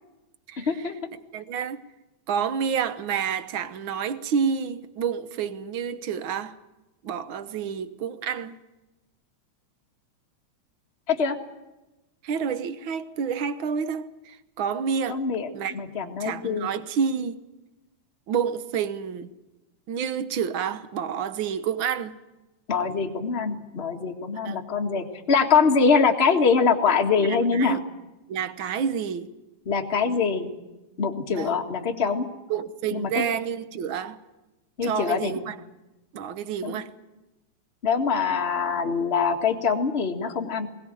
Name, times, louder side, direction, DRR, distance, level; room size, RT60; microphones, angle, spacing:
voice 1, 0.5-0.9 1.3-1.8 2.3-6.5 7.0-8.6 12.2-15.2 15.5-15.8 16.2-17.4 18.3-19.3 19.9-22.2 24.4-24.6 27.2-27.8 28.3-29.3 31.3-31.6 32.5-34.2 34.8-35.6 36.1-36.9, right 7 dB, 65° right, 1.3 m, -29 dB
voice 2, 15.1-16.7 22.7-27.8 29.6-30.5 31.0-32.2 32.9-33.1 34.8-35.4 36.6-36.8 37.8-40.7, left 5 dB, 25° left, 1.5 m, -23 dB
21.5 x 18.5 x 9.1 m
omnidirectional pair, 3.5 m